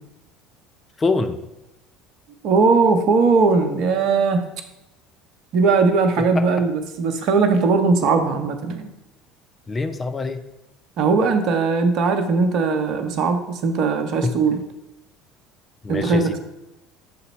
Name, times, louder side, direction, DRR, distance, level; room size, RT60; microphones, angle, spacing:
voice 1, 1.0-1.4 6.3-6.4 9.7-10.4 14.2-14.3 15.8-16.4, left 3 dB, 25° left, 7 dB, 0.6 m, -24 dB
voice 2, 2.4-4.4 5.5-8.9 11.0-14.6 15.9-16.4, right 4 dB, 50° right, 7 dB, 0.8 m, -19 dB
6.7 x 4.0 x 5.3 m, 0.96 s
figure-of-eight pair, 65°, 0 cm